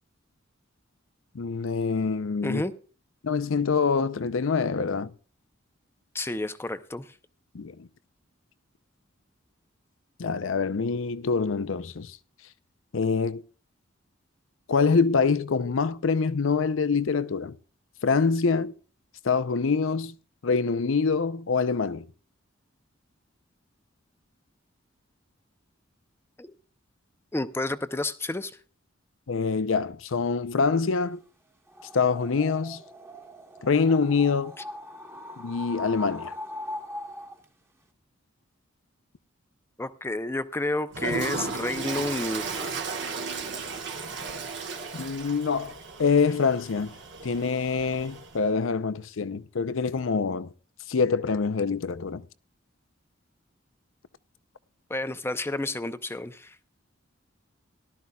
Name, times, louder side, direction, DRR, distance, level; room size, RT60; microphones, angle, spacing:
voice 1, 1.3-2.6 3.2-5.1 7.5-7.9 10.2-12.2 12.9-13.4 14.7-17.5 18.0-18.7 19.2-20.1 20.4-22.1 29.3-31.2 31.9-32.8 33.6-34.5 35.4-36.3 44.9-46.9 47.2-50.5 50.9-52.2, left 5 dB, 75° left, 0.6 m, -25 dB
voice 2, 6.1-7.1 26.4-26.5 27.3-28.5 39.8-42.9 54.9-56.6, left 2 dB, 10° left, 0.6 m, -30 dB
sound 1, 31.7-37.4, left 1 dB, 15° right, 1.2 m, -40 dB
Toilet flush, 40.9-48.4, right 4 dB, 65° right, 1.4 m, -35 dB
18.0 x 12.0 x 2.3 m
head